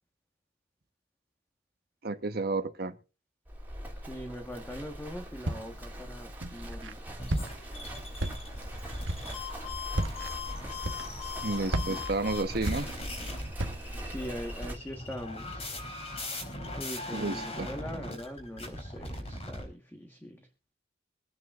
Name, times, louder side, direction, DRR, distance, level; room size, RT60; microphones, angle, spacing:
voice 1, 2.0-2.9 11.4-12.9 17.1-17.7, right 2 dB, 55° right, 1.1 m, -31 dB
Livestock farm animals working animals, 3.5-14.8, equal, 10° right, 2.8 m, -42 dB
voice 2, 4.1-6.9 11.9-12.0 14.0-15.7 16.8-20.5, equal, 10° left, 1.4 m, -41 dB
Walk footsteps, 5.4-5.9 6.4-6.9 7.3-7.8 8.2-8.7 9.0-9.4 9.9-10.3 10.8-11.3 11.7-13.2 13.6-14.0, right 1 dB, 85° right, 1.3 m, -33 dB
sound 1, 7.2-19.6, left 2 dB, 35° left, 4.0 m, -40 dB
24.0 x 9.6 x 2.5 m
head